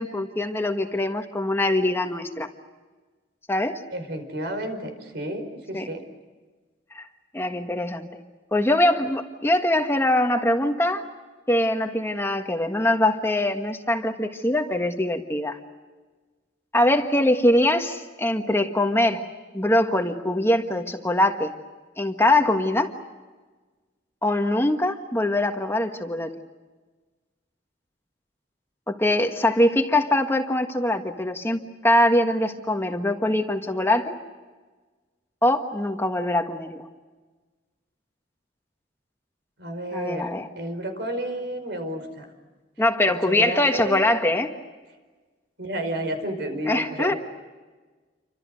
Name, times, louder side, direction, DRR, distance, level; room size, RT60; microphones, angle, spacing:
voice 1, 0.0-2.5 3.5-3.8 5.7-5.9 6.9-7.1 7.3-8.2 8.5-11.0 11.5-15.6 16.7-19.2 19.5-21.5 22.0-22.9 24.2-26.3 28.9-34.2 35.4-36.9 39.9-40.5 42.8-44.5 46.6-47.1, left 1 dB, 15° left, 5 dB, 1.5 m, -23 dB
voice 2, 3.9-6.0 17.0-17.1 39.6-40.3 40.6-42.3 43.1-44.0 45.6-47.2, right 1 dB, 70° right, 7 dB, 5.1 m, -31 dB
29.0 x 25.5 x 6.5 m, 1.3 s
head